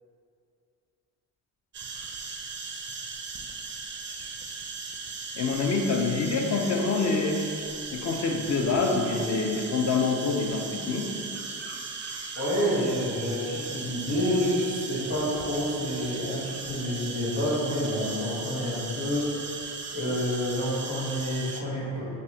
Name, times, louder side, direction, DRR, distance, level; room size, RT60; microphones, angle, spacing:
sound 1, 1.7-21.6, right 4 dB, 30° right, 0.4 m, -37 dB
voice 1, 5.3-7.5 7.9-11.1, left 4 dB, 40° left, 3 dB, 0.5 m, -26 dB
voice 2, 12.3-19.6 19.9-22.1, equal, 85° left, -13 dB, 1.2 m, -28 dB
5.3 x 2.1 x 2.7 m, 2.6 s
supercardioid pair, 65°, 41 cm